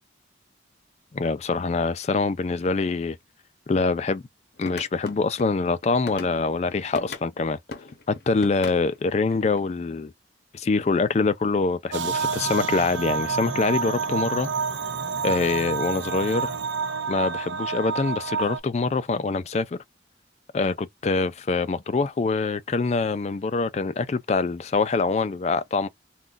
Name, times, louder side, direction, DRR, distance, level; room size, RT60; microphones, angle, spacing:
voice 1, 1.1-3.2 3.7-4.2 4.6-7.6 8.1-10.1 10.5-14.5 15.2-16.6 17.1-19.8 20.5-25.9, left 4 dB, 35° left, 0.3 m, -24 dB
sound 1, 4.6-7.3 7.7-9.6, left 4 dB, 65° left, 0.7 m, -39 dB
sound 2, 11.9-18.6, right 5 dB, 85° right, 0.5 m, -28 dB
2.4 x 2.3 x 3.8 m
head